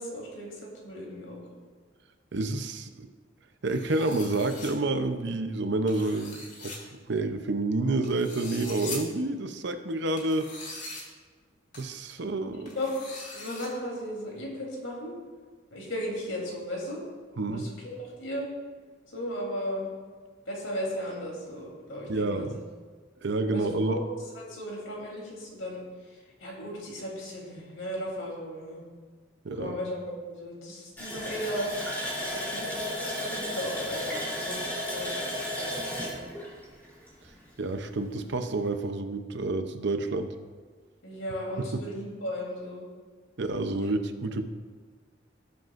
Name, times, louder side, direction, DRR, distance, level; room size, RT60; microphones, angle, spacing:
voice 1, 0.0-1.4 12.1-12.2 12.5-12.9 13.3-15.2 15.7-17.0 17.4-18.5 19.1-19.9 20.5-22.6 23.5-24.0 24.3-28.8 29.5-31.7 32.2-36.2 41.0-42.9 43.8-43.9, equal, 75° left, -3 dB, 3.4 m, -36 dB
voice 2, 2.3-3.1 3.6-6.8 7.1-10.5 11.7-12.7 17.4-17.7 22.1-22.6 23.2-24.0 29.4-29.8 37.6-40.3 41.6-41.8 43.4-44.4, right 2 dB, 60° right, 8 dB, 0.7 m, -29 dB
sound 1, 3.7-4.7 5.9-6.8 8.0-9.0 10.2-11.0 11.7-11.8 12.7-13.7, left 3 dB, 40° left, 2.2 m, -41 dB
Water tap faucet, 31.0-37.5 37.8-37.9 38.3-38.5, left 1 dB, 10° left, 3.3 m, -33 dB
18.0 x 7.8 x 2.5 m, 1.5 s
head